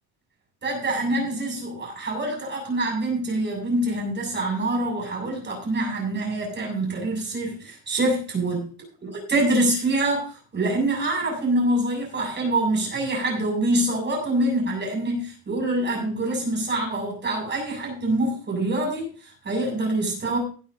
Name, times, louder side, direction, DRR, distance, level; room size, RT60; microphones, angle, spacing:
voice 1, 0.6-8.6 9.0-20.4, right 1 dB, 25° right, 1 dB, 6.8 m, -25 dB
17.5 x 11.5 x 2.8 m, 0.38 s
cardioid pair, 160°, 43 cm